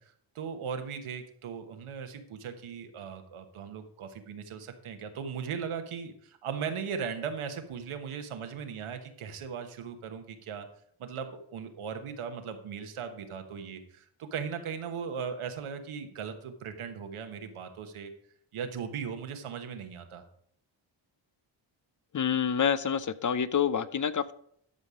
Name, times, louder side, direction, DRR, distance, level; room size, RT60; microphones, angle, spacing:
voice 1, 0.0-10.7 11.0-18.1 18.5-20.3, right 6 dB, 85° right, 7 dB, 1.3 m, -38 dB
voice 2, 22.1-24.3, left 7 dB, 40° left, 15 dB, 0.6 m, -27 dB
12.5 x 5.4 x 4.9 m, 0.66 s
cardioid pair, 65°, 49 cm